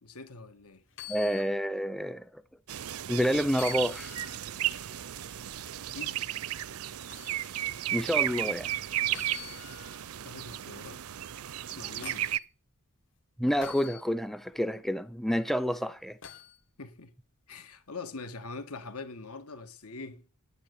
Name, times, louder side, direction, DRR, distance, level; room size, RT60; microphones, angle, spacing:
voice 1, 0.0-0.8 5.9-6.3 10.2-11.0 11.7-12.3 16.8-17.1 17.5-20.2, left 3 dB, 75° left, 1.8 m, -43 dB
sound 1, 0.9-1.6 2.0-2.1 3.5-4.5 7.1-7.4 9.1-10.1 11.5-12.4 13.6-14.0 16.2-16.6 18.4-18.5, left 11 dB, 60° left, 1.8 m, -46 dB
voice 2, 1.1-2.2 3.1-4.1 7.9-8.7 13.4-16.2, equal, ahead, 0.5 m, -28 dB
sound 2, 2.7-12.4, right 13 dB, 70° right, 0.6 m, -34 dB
10.0 x 9.6 x 8.4 m
head